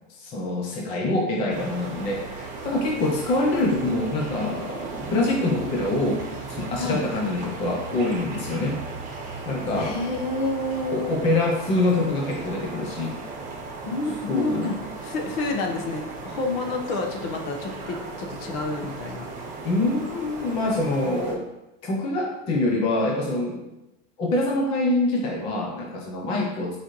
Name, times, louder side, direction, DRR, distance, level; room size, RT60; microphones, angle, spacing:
voice 1, 0.1-6.2 6.5-8.8 9.5-10.0 10.9-13.1 14.3-14.7 19.6-21.4 21.8-23.6 24.2-26.7, left 2 dB, 15° left, 0 dB, 0.4 m, -25 dB
sound 1, 1.5-21.3, right 3 dB, 20° right, 1.2 m, -36 dB
voice 2, 9.7-11.1 13.9-14.8 15.0-19.3 26.3-26.5, left 2 dB, 45° left, 3 dB, 1.1 m, -29 dB
9.7 x 4.5 x 3.0 m, 0.97 s
supercardioid pair, 165°, 40 cm